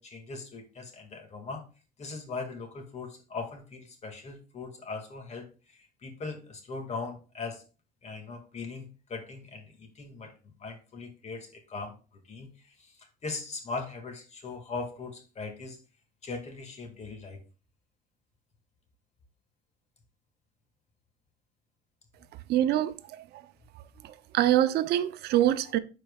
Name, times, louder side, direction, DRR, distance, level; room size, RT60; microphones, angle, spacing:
voice 1, 0.0-1.7 2.0-7.7 8.0-12.0 12.3-15.8 16.2-17.4, left 4 dB, 40° left, 2.0 m, -40 dB
voice 2, 22.5-23.2 24.3-25.8, right 12 dB, 75° right, 0.6 m, -24 dB
12.5 x 4.6 x 2.3 m
cardioid pair, 110°, 17 cm